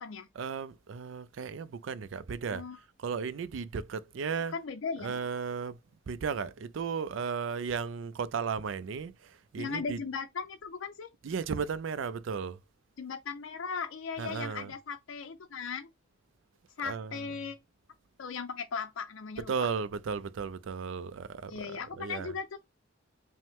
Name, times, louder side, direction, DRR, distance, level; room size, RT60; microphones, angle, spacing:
voice 1, 0.3-2.6 3.0-4.6 5.0-5.8 6.1-10.0 11.2-12.6 14.2-14.7 16.8-17.4 19.4-22.4, right 6 dB, 75° right, 0.4 m, -35 dB
voice 2, 4.5-5.2 9.6-11.1 13.0-15.9 16.8-17.6 18.2-19.5 21.5-22.6, left 5 dB, 85° left, 0.5 m, -37 dB
5.3 x 2.1 x 3.5 m
head